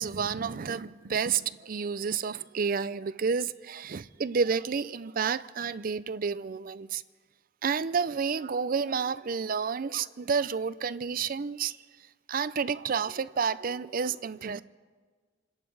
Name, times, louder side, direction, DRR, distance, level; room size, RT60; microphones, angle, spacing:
voice 1, 0.0-7.0 7.6-11.8 12.3-14.6, right 6 dB, 50° right, 0.5 m, -30 dB
28.0 x 10.5 x 4.8 m
head